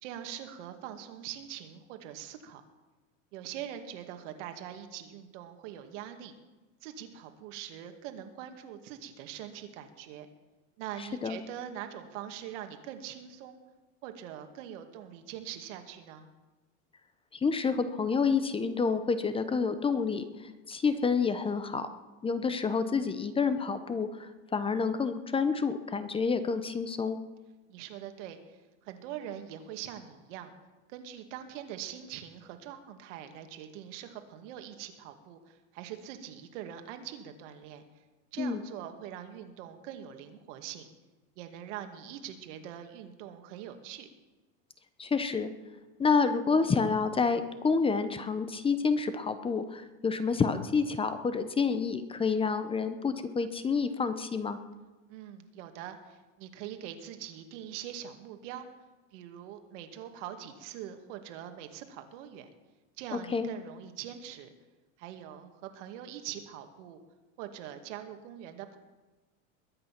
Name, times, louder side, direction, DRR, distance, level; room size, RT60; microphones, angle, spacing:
voice 1, 0.0-2.6 3.3-6.3 6.8-10.3 10.8-13.6 14.0-16.3 27.7-28.4 28.8-30.5 30.9-37.8 38.3-40.9 41.4-44.1 55.1-58.7 59.1-62.5 63.0-64.5 65.0-67.0 67.4-68.8, right 10 dB, 70° right, 6 dB, 2.2 m, -43 dB
voice 2, 11.0-11.4 17.3-21.9 22.2-27.2 38.4-38.6 45.0-45.5 46.0-54.6 63.3-63.5, left 5 dB, 15° left, 11 dB, 0.8 m, -29 dB
21.5 x 9.2 x 6.0 m, 1.2 s
supercardioid pair, 140°, 38 cm